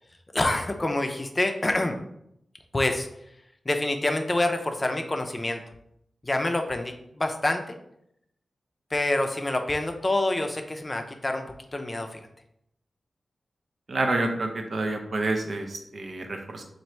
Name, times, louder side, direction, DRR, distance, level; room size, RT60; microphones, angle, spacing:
voice 1, 0.3-1.9 2.7-3.1 3.7-5.6 6.2-7.8 8.9-11.4 11.7-12.2, left 2 dB, 35° left, 4 dB, 0.5 m, -26 dB
voice 2, 13.9-16.6, right 2 dB, 60° right, 3 dB, 0.6 m, -28 dB
3.1 x 2.5 x 4.3 m, 0.76 s
cardioid pair, 40°, 0 cm